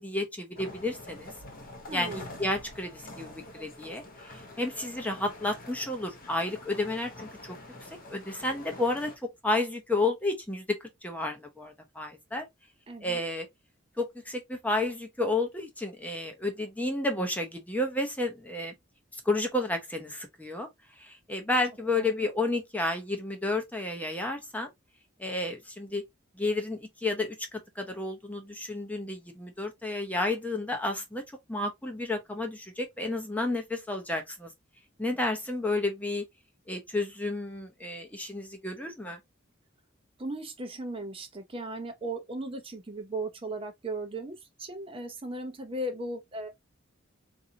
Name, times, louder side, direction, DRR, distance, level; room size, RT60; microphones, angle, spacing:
voice 1, 0.0-1.3 1.9-7.6 8.1-12.5 13.0-13.5 14.0-18.7 19.1-20.7 21.0-24.7 25.2-26.0 26.4-31.2 31.5-34.5 35.0-36.3 36.7-39.2, left 2 dB, 10° left, 0.7 m, -31 dB
sound 1, 0.5-9.2, left 2 dB, 45° left, 1.0 m, -46 dB
voice 2, 1.9-2.2 12.9-13.2 21.9-22.2 40.2-46.5, right 2 dB, 30° right, 0.6 m, -37 dB
4.0 x 2.5 x 2.7 m
head